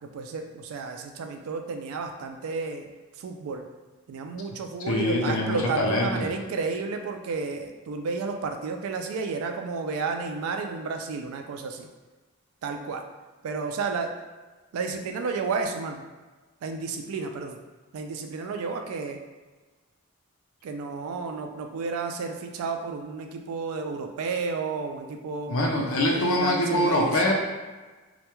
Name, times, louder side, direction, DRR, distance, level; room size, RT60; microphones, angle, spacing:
voice 1, 0.0-2.9 3.1-3.7 4.1-11.9 12.6-13.0 13.4-14.1 14.7-16.0 16.6-17.6 17.9-19.2 20.6-25.6 26.1-27.3, right 4 dB, 80° right, 5 dB, 0.3 m, -32 dB
voice 2, 4.9-6.3 25.5-27.3, left 1 dB, 75° left, 0 dB, 0.5 m, -24 dB
2.2 x 2.2 x 2.9 m, 1.3 s
head